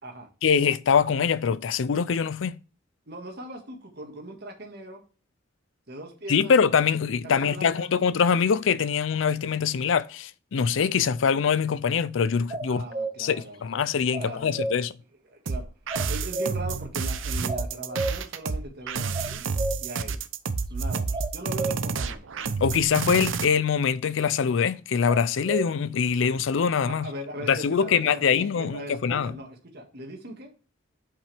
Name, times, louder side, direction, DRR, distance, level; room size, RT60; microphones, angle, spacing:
voice 1, 0.4-2.6 6.3-12.8 13.2-14.9 22.6-27.1 27.5-29.4, left 6 dB, 75° left, 0.4 m, -23 dB
voice 2, 3.1-5.0 5.9-6.6 7.2-7.9 12.6-13.6 14.1-14.7 15.3-15.6 16.1-19.5 19.8-20.2 20.7-22.2 26.9-30.5, right 1 dB, 55° right, 1.7 m, -39 dB
sound 1, 12.5-13.2 14.1-14.8 15.9-16.7 17.5-18.2 19.1-19.8 21.1-21.8 25.1-25.7, right 2 dB, 20° right, 0.6 m, -31 dB
sound 2, 15.5-23.4, right 5 dB, 80° right, 0.7 m, -29 dB
7.7 x 5.5 x 3.4 m
head